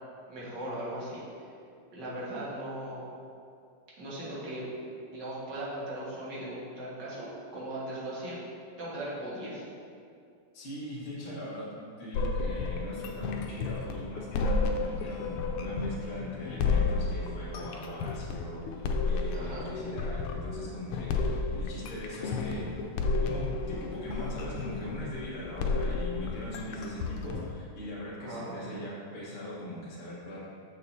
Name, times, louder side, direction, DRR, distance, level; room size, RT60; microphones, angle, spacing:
voice 1, 0.3-1.5 1.9-3.1 4.0-4.7 5.1-8.4 8.8-9.6 19.3-19.7 28.2-28.8, right 1 dB, 55° right, -8 dB, 2.2 m, -38 dB
voice 2, 10.5-22.7 23.2-30.4, left 1 dB, 30° left, -9 dB, 1.3 m, -40 dB
sound 1, 12.1-27.5, left 3 dB, 85° left, 1.5 m, -32 dB
6.8 x 6.4 x 2.7 m, 2.4 s
omnidirectional pair, 2.4 m